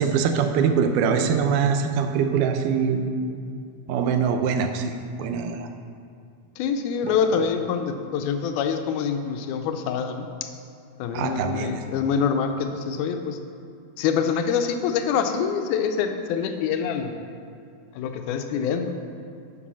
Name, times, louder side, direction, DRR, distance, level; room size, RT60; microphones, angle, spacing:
voice 1, 0.0-3.1 3.9-5.7 7.0-7.2 11.1-11.8, right 6 dB, 85° right, 6 dB, 2.2 m, -23 dB
voice 2, 6.6-10.5 11.0-13.4 14.0-17.2 18.0-18.9, left 7 dB, 90° left, 6 dB, 2.2 m, -25 dB
9.9 x 5.5 x 6.2 m, 2.4 s
omnidirectional pair, 3.5 m